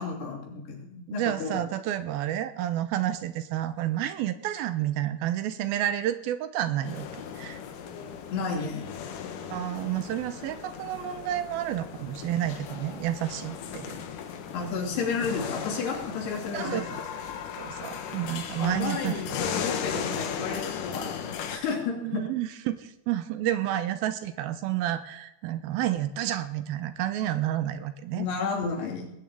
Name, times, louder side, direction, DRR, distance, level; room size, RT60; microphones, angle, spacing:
voice 1, 0.0-1.6 8.3-8.9 14.5-16.9 18.6-22.2 28.1-29.1, left 5 dB, 90° left, 0 dB, 5.0 m, -32 dB
voice 2, 1.1-7.1 7.4-7.6 9.5-14.0 16.5-17.0 17.6-19.2 22.0-28.3, right 12 dB, 75° right, 11 dB, 2.7 m, -30 dB
sound 1, 6.8-21.6, left 7 dB, 65° left, 2.5 m, -37 dB
20.0 x 7.2 x 8.7 m, 0.86 s
omnidirectional pair, 4.6 m